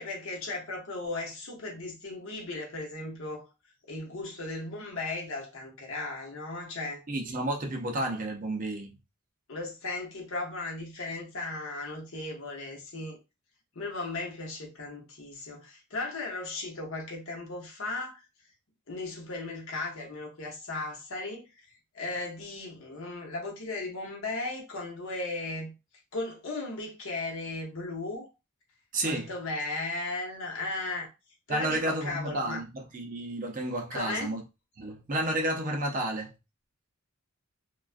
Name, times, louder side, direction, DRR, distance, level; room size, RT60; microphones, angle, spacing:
voice 1, 0.0-3.5 3.9-7.0 9.5-13.2 13.7-18.2 18.9-21.7 21.9-25.7 26.1-28.3 29.0-31.1 31.5-32.6 33.9-34.3, left 2 dB, 65° left, 0.9 m, -36 dB
voice 2, 7.1-8.9 28.9-29.3 31.5-34.4 34.8-36.3, right 1 dB, 40° right, 0.5 m, -31 dB
2.3 x 2.2 x 2.4 m
head